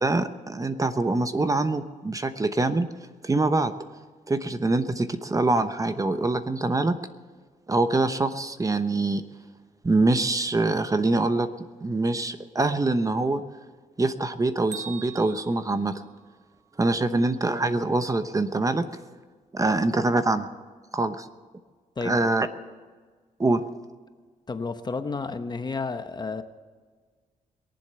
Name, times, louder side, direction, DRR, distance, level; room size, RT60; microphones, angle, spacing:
voice 1, 0.0-2.9 3.2-3.7 4.3-6.9 7.7-9.2 9.8-11.5 11.8-13.4 14.0-16.0 16.8-18.9 19.5-20.5 20.9-21.3 22.0-22.5 23.4-23.6, right 2 dB, 25° right, 10 dB, 1.0 m, -24 dB
Bell, 14.7-16.7, right 7 dB, 60° right, 1.4 m, -43 dB
voice 2, 22.0-22.7 24.5-26.4, left 4 dB, 30° left, 9 dB, 1.0 m, -32 dB
22.5 x 7.7 x 6.9 m, 1.5 s
cardioid pair, 80°, 14 cm